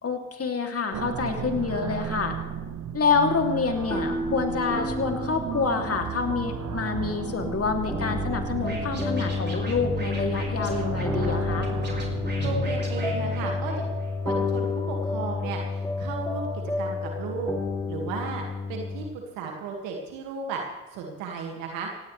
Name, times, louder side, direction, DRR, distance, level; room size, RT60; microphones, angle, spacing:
voice 1, 0.0-2.4 2.9-11.7, left 5 dB, 45° left, 4 dB, 2.9 m, -27 dB
sound 1, 0.9-14.0, right 8 dB, 55° right, 1.4 m, -35 dB
sound 2, 3.8-19.1, left 3 dB, 5° left, 2.9 m, -30 dB
Scratching (performance technique), 8.6-14.1, right 2 dB, 30° right, 5.4 m, -41 dB
voice 2, 12.4-13.8 14.2-17.5 17.9-18.4 18.7-20.6 20.9-21.9, right 5 dB, 85° right, 1 dB, 2.1 m, -34 dB
17.5 x 16.5 x 3.3 m, 1.2 s
hypercardioid pair, 50°, 33 cm